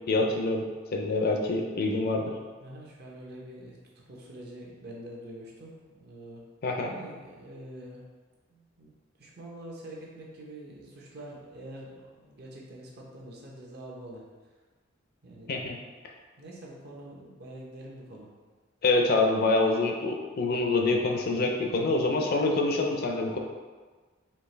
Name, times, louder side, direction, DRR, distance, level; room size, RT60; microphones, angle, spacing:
voice 1, 0.1-0.7 0.9-2.4 6.6-6.9 15.5-15.8 18.8-23.4, left 2 dB, 50° left, 2 dB, 0.5 m, -26 dB
voice 2, 2.6-3.8 4.1-6.4 6.8-8.0 8.5-8.9 9.2-14.2 15.2-15.5 16.4-18.3, right 1 dB, 55° right, -3 dB, 0.9 m, -45 dB
4.5 x 2.9 x 3.3 m, 1.4 s
head